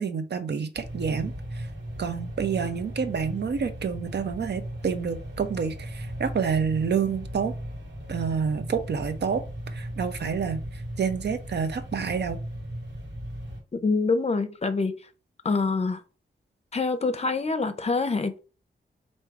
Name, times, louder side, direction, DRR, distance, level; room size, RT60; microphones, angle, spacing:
voice 1, 0.0-1.3 2.0-7.5 8.1-9.4 9.7-10.6 11.0-12.4, right 6 dB, 70° right, 0.7 m, -28 dB
sound 1, 0.7-13.6, equal, 90° right, 1.6 m, -37 dB
voice 2, 13.7-14.9 15.4-16.0 16.7-18.4, left 4 dB, 35° left, 0.6 m, -25 dB
3.3 x 2.7 x 4.6 m
wide cardioid pair, 90°, 18 cm